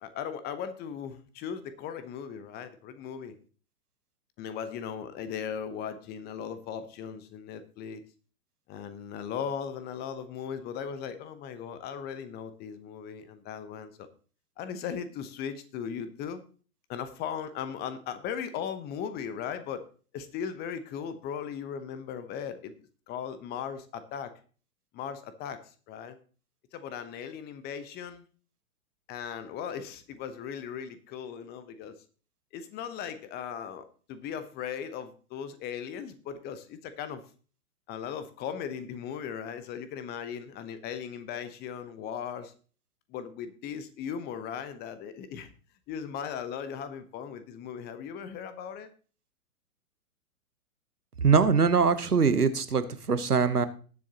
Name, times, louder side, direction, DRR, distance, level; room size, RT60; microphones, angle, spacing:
voice 1, 0.0-3.4 4.4-8.0 8.7-14.1 14.6-16.4 16.9-19.8 20.1-22.7 23.1-24.3 24.9-26.2 26.7-28.2 29.1-31.9 32.5-37.2 37.9-42.5 43.1-45.5 45.9-48.9, left 8 dB, 20° left, 12 dB, 1.0 m, -38 dB
voice 2, 51.2-53.7, right 5 dB, 85° right, 11 dB, 1.2 m, -23 dB
19.0 x 7.3 x 2.9 m, 0.40 s
figure-of-eight pair, 110°, 44 cm